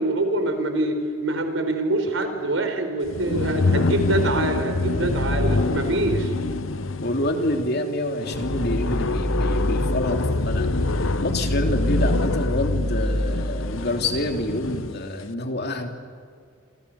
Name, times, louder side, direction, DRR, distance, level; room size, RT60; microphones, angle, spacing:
voice 1, 0.0-6.3, right 2 dB, 80° right, 6 dB, 4.6 m, -25 dB
sound 1, 3.0-15.1, left 3 dB, 80° left, 0.9 m, -26 dB
voice 2, 7.0-15.9, left 1 dB, 55° left, 4 dB, 3.1 m, -27 dB
sound 2, 8.3-14.3, equal, 45° right, 3.6 m, -27 dB
28.5 x 26.5 x 7.0 m, 2.2 s
head